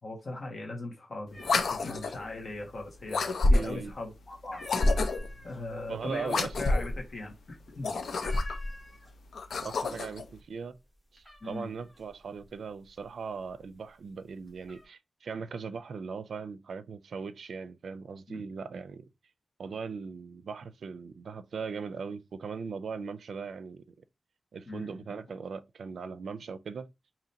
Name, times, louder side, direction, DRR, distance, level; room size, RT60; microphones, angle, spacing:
voice 1, 0.0-4.6 5.4-7.3 7.7-8.0 11.4-11.7 18.3-18.4 24.7-25.1, left 2 dB, 40° left, 1.5 m, -39 dB
sound 1, 1.3-2.2 2.5-3.2 3.6-4.0 4.3-9.4 9.7-10.3 10.6-13.7 14.2-14.9, left 1 dB, 5° left, 2.0 m, -50 dB
sound 2, 1.4-2.2 3.1-3.9 4.6-5.4 6.2-7.0 7.7-8.7 9.3-10.2, left 2 dB, 90° left, 0.6 m, -28 dB
voice 2, 3.5-3.9 5.9-6.5 9.6-10.8 11.1-19.0 19.6-23.8 24.5-26.9, right 5 dB, 80° right, 0.4 m, -39 dB
5.0 x 2.9 x 2.8 m
wide cardioid pair, 145°, 0 cm